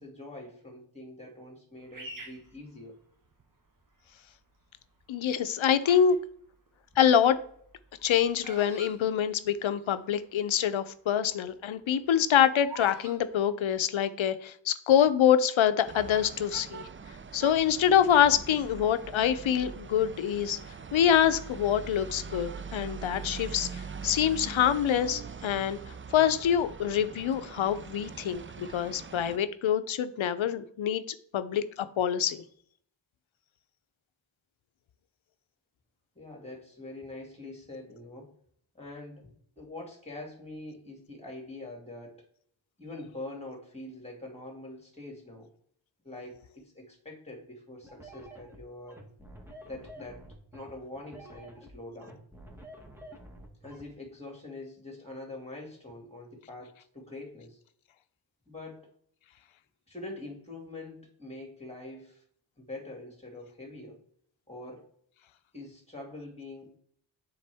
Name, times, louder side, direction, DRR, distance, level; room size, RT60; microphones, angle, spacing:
voice 1, 0.0-3.0 5.6-6.1 36.2-38.3 38.7-39.3 39.6-42.3 42.8-45.5 46.0-49.0 49.6-50.2 50.5-52.2 53.6-57.6 58.5-58.9 59.9-62.2 62.6-64.0 64.5-64.9 65.5-66.8, left 2 dB, 15° left, 0 dB, 2.1 m, -44 dB
Bird vocalization bird call bird song, 1.9-3.4 4.1-4.5 5.2-6.2 6.5-9.9 10.2-10.3 10.5-10.8 11.3-13.2, right 1 dB, 45° right, 1.1 m, -46 dB
voice 2, 5.1-6.2 7.0-7.4 8.0-16.9 17.3-20.6 20.9-25.8 26.1-31.0 31.3-32.4, left 9 dB, 85° left, 12 dB, 0.6 m, -25 dB
sound 1, 15.8-29.4, right 6 dB, 30° right, 0.4 m, -42 dB
sound 2, 47.8-53.9, right 1 dB, 5° right, 1.3 m, -49 dB
9.5 x 3.9 x 3.4 m, 0.63 s
wide cardioid pair, 75°, 46 cm